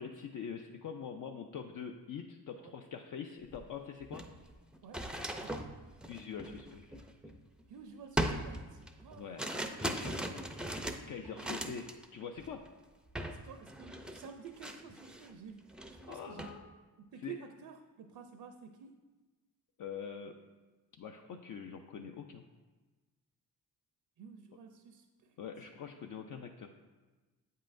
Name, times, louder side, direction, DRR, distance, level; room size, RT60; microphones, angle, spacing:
voice 1, 0.0-4.2 6.1-7.0 9.2-10.2 11.1-11.9 12.1-12.6 16.1-16.6 17.2-17.4 19.8-20.4 21.0-22.5 25.4-26.7, left 7 dB, 55° left, 4 dB, 0.5 m, -44 dB
sound 1, 3.5-3.6 4.0-7.6 8.2-12.1 12.4-12.7 13.2-13.4 13.7-15.3 15.7-16.6, right 1 dB, ahead, 0.4 m, -39 dB
voice 2, 5.4-5.8 7.7-9.4 11.3-11.6 13.3-16.6 17.0-19.0 24.2-25.4, right 6 dB, 65° right, 6 dB, 0.5 m, -51 dB
8.0 x 5.5 x 2.5 m, 1.3 s
cardioid pair, 75°, 39 cm